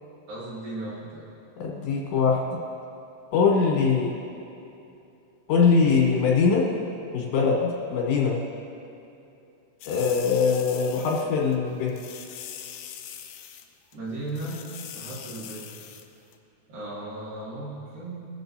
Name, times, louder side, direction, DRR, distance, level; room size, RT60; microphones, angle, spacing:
voice 1, 0.3-1.3 13.9-14.7 14.9-15.7 16.7-18.2, right 2 dB, 55° right, -8 dB, 3.6 m, -36 dB
voice 2, 1.6-2.6 3.3-4.1 5.5-6.6 7.1-8.4 9.9-12.0, left 5 dB, 70° left, -2 dB, 3.6 m, -22 dB
sound 1, 9.8-11.3 11.5-11.6 11.9-13.7 13.9-14.0 14.3-16.1 16.3-16.4, left 9 dB, 90° left, 2.4 m, -41 dB
21.5 x 7.6 x 2.7 m, 2.7 s
omnidirectional pair, 5.5 m